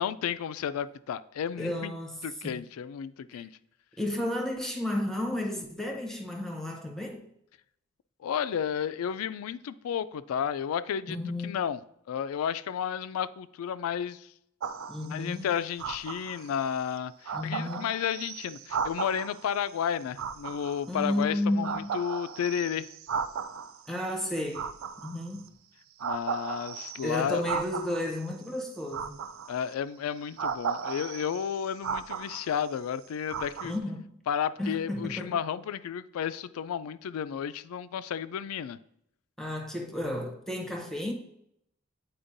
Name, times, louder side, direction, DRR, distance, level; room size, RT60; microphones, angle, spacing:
voice 1, 0.0-1.9 2.2-3.5 8.2-11.2 11.4-11.8 12.1-14.3 15.0-22.9 26.0-27.4 29.5-33.8 34.3-38.8, left 8 dB, 85° left, 0.3 m, -32 dB
voice 2, 1.6-2.2 2.4-2.6 3.3-3.4 4.0-7.3 11.1-11.6 14.9-15.5 17.3-17.9 20.9-22.0 23.9-24.7 25.0-25.5 27.0-29.2 33.6-34.1 34.6-35.4 39.4-41.1, left 1 dB, ahead, 0.6 m, -32 dB
sound 1, 14.6-15.2 15.8-16.5 17.0-17.1 17.2-19.4 20.2-21.2 21.6-23.8 24.5-25.4 26.0-28.2 28.9-29.7 30.4-32.7 33.3-33.8, right 6 dB, 70° right, 0.4 m, -35 dB
8.6 x 4.4 x 2.6 m
head